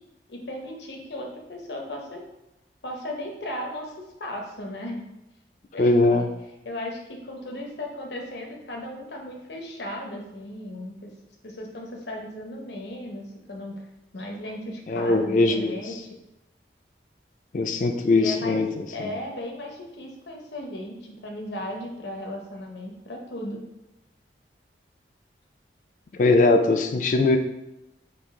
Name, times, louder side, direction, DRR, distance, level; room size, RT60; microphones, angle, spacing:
voice 1, 0.3-2.2 2.8-3.9 4.2-5.1 5.7-6.3 6.6-11.1 11.4-13.8 14.1-16.1 18.1-18.6 18.9-23.6, left 1 dB, 75° left, 1 dB, 0.8 m, -36 dB
voice 2, 5.8-6.3 14.9-15.8 17.5-18.7 19.0-19.1 26.2-27.4, left 2 dB, 45° left, 6 dB, 0.3 m, -20 dB
5.2 x 2.5 x 3.5 m, 0.93 s
head